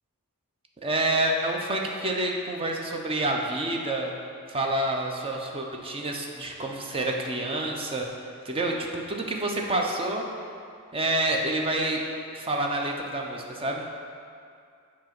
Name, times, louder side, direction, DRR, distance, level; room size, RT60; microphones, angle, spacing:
voice 1, 0.8-4.1 4.5-8.1 8.4-10.3 10.9-12.0 12.3-13.8, right 1 dB, 25° right, 1 dB, 0.5 m, -28 dB
7.2 x 2.8 x 5.9 m, 2.4 s
head